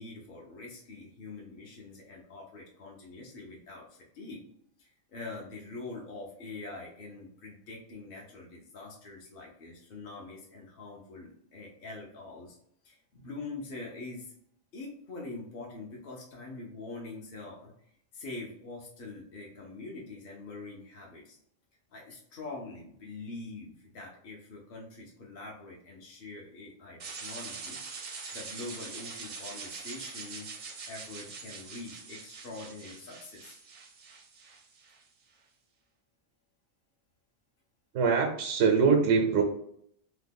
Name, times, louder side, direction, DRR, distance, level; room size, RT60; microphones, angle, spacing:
voice 1, 0.0-4.4 4.8-12.6 12.8-14.3 14.7-17.7 18.1-21.4 21.9-27.8 28.3-30.5 30.9-33.6, left 3 dB, 55° left, -2 dB, 0.7 m, -44 dB
sound 1, 27.0-35.0, right 4 dB, 55° right, 0.5 m, -43 dB
voice 2, 37.9-39.4, right 5 dB, 90° right, 2 dB, 1.0 m, -23 dB
2.9 x 2.1 x 3.4 m, 0.68 s
omnidirectional pair, 1.2 m